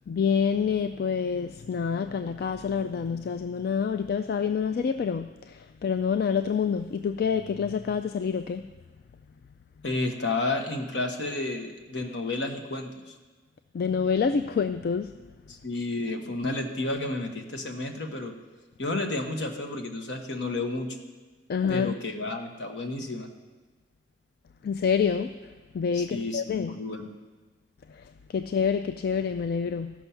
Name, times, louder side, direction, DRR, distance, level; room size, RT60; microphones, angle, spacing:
voice 1, 0.1-8.7 13.7-15.1 21.5-21.9 24.6-25.3 25.7-26.7 28.0-28.1 28.3-29.9, left 6 dB, 55° left, 10 dB, 0.3 m, -27 dB
voice 2, 9.8-13.2 15.5-18.3 18.8-21.0 21.7-23.3 25.9-27.1, left 2 dB, 75° left, 4 dB, 1.2 m, -31 dB
13.5 x 6.2 x 5.7 m, 1.3 s
head